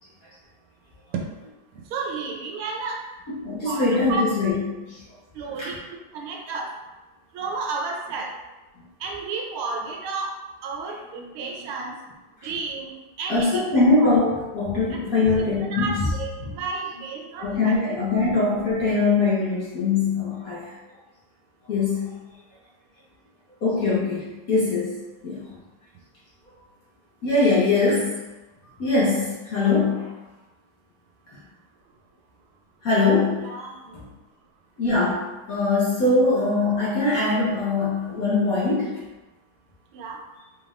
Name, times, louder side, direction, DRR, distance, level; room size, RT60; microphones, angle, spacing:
voice 1, 1.7-3.0 3.7-4.3 5.3-5.7 6.1-6.7 7.3-8.3 9.0-10.3 10.6-11.9 12.4-13.6 14.0-14.1 15.7-18.0 33.4-33.9 39.9-40.2, right 4 dB, 85° right, 1 dB, 1.6 m, -32 dB
voice 2, 3.3-4.6 4.9-5.0 5.6-5.7 13.3-16.0 16.4-16.5 17.4-20.7 21.7-22.1 23.6-25.4 27.2-28.1 28.8-30.1 32.8-33.5 34.8-39.0, left 3 dB, 55° left, -7 dB, 1.1 m, -22 dB
4.1 x 3.5 x 2.4 m, 1.1 s
omnidirectional pair, 2.3 m